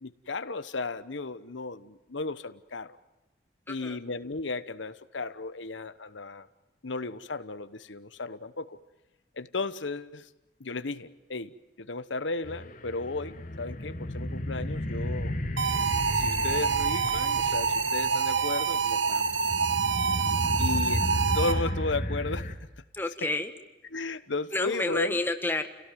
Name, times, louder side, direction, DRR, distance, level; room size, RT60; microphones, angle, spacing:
voice 1, 0.0-3.0 3.7-6.5 6.8-8.8 9.4-10.3 10.6-15.4 16.1-19.3 20.6-21.0 21.3-22.7 23.9-25.2, left 3 dB, 80° left, 13 dB, 1.1 m, -34 dB
voice 2, 3.7-4.0 22.9-23.5 24.5-25.7, left 2 dB, 10° left, 7 dB, 1.5 m, -29 dB
sound 1, 12.4-22.5, left 1 dB, 45° left, 1.9 m, -33 dB
sound 2, 15.6-21.8, right 5 dB, 80° right, 1.2 m, -27 dB
29.5 x 17.5 x 9.2 m, 1.1 s
head